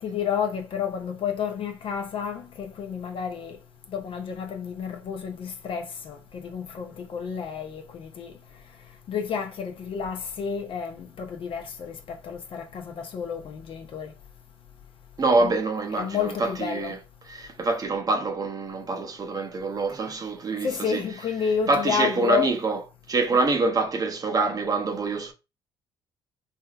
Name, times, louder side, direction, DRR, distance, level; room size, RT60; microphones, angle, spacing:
voice 1, 0.0-3.6 3.9-8.3 9.1-14.1 15.4-15.5 15.9-17.0 20.6-22.5 23.3-23.4, left 7 dB, 55° left, 0.7 m, -30 dB
voice 2, 15.2-17.0 17.3-21.0 21.7-22.8 23.1-25.3, right 3 dB, 35° right, 0.7 m, -25 dB
3.4 x 2.7 x 2.4 m
hypercardioid pair, 60°, 11 cm